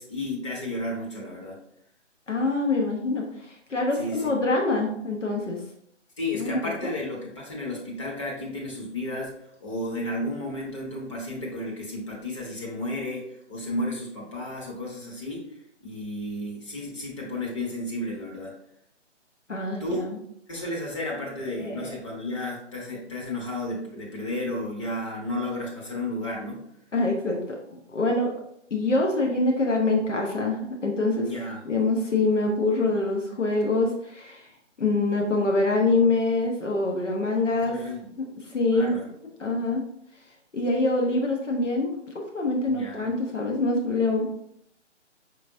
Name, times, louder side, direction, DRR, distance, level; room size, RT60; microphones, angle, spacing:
voice 1, 0.0-1.6 3.9-4.3 6.2-15.5 15.8-18.6 19.8-20.1 20.5-26.6 31.2-31.6 37.6-38.1 38.7-39.1 42.7-43.2, left 1 dB, 25° left, -3 dB, 0.9 m, -33 dB
voice 2, 2.3-3.3 3.7-5.6 6.3-6.9 19.5-20.2 21.6-21.9 26.9-27.4 27.7-28.3 28.7-31.3 31.6-34.5 34.8-37.8 38.5-39.0 39.4-39.8 40.5-41.9 42.3-44.3, left 2 dB, 75° left, 0 dB, 1.0 m, -25 dB
5.0 x 3.4 x 2.6 m, 0.73 s
figure-of-eight pair, 140°, 37 cm